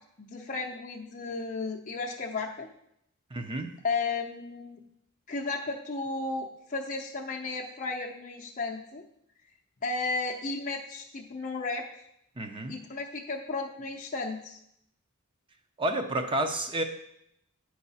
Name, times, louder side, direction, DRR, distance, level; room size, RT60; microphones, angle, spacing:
voice 1, 0.2-2.7 3.8-4.8 5.3-9.0 9.8-11.9 12.7-14.6, left 3 dB, 40° left, -1 dB, 0.6 m, -34 dB
voice 2, 3.3-3.7 12.4-12.7 15.8-16.8, right 1 dB, 25° right, 6 dB, 0.6 m, -30 dB
9.7 x 4.7 x 4.1 m, 0.76 s
head